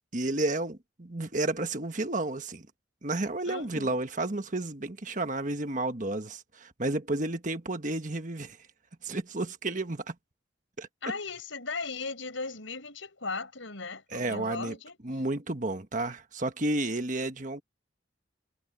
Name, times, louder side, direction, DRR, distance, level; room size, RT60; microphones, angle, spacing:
voice 1, 0.1-2.7 3.0-8.6 9.0-10.1 10.8-10.9 14.1-14.7 15.0-17.6, right 2 dB, 40° right, 1.4 m, -31 dB
voice 2, 3.4-4.0 11.0-15.2, left 4 dB, 85° left, 6.4 m, -37 dB
head